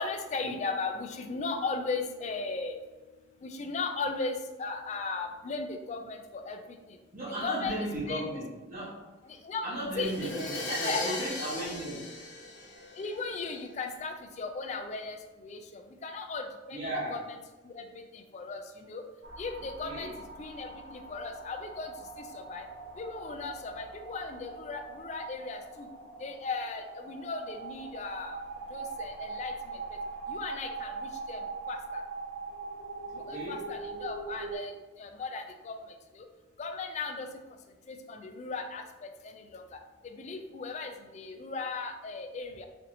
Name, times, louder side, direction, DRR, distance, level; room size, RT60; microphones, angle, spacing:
voice 1, 0.0-2.8 3.4-6.6 7.4-7.7 8.1-8.3 9.3-9.7 10.0-10.5 10.8-11.2 13.0-17.2 17.6-17.8 18.1-19.0 19.4-20.1 20.4-21.9 22.2-22.7 23.0-25.9 26.2-28.4 28.7-29.5 30.3-32.0 33.1-34.7 35.0-35.8 36.2-36.3 36.6-37.3 37.9-38.8 39.2-39.8 40.0-42.7, left 4 dB, 40° left, 5 dB, 0.3 m, -37 dB
voice 2, 7.1-8.9 9.6-12.1 12.6-12.9 16.7-17.2 19.8-20.2 33.1-33.6, right 1 dB, 45° right, -10 dB, 1.0 m, -36 dB
Crash cymbal, 9.9-13.7, left 2 dB, 70° left, 0.8 m, -38 dB
sound 1, 19.2-34.6, right 4 dB, 75° right, 1.3 m, -42 dB
4.2 x 2.8 x 2.6 m, 1.2 s
head